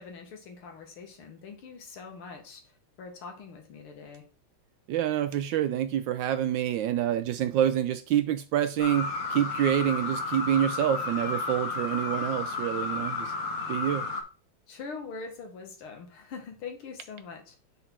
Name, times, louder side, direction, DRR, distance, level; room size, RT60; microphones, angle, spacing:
voice 1, 0.0-2.6 3.0-4.3 14.7-17.6, left 5 dB, 80° left, 2.3 m, -43 dB
voice 2, 4.9-13.3 13.7-14.1, right 11 dB, 75° right, 1.1 m, -27 dB
sound 1, 8.8-14.2, left 3 dB, 50° left, 1.3 m, -32 dB
5.4 x 4.0 x 5.9 m
omnidirectional pair, 2.3 m